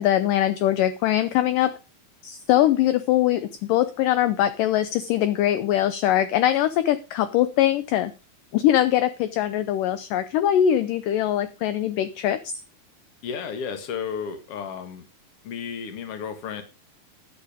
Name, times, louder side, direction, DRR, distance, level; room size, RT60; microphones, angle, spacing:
voice 1, 0.0-1.7 2.2-8.1 8.5-12.5, left 12 dB, 75° left, 12 dB, 2.1 m, -22 dB
voice 2, 13.2-15.1 15.4-16.6, left 7 dB, 50° left, 8 dB, 2.1 m, -33 dB
11.0 x 8.2 x 5.1 m, 0.32 s
omnidirectional pair, 4.3 m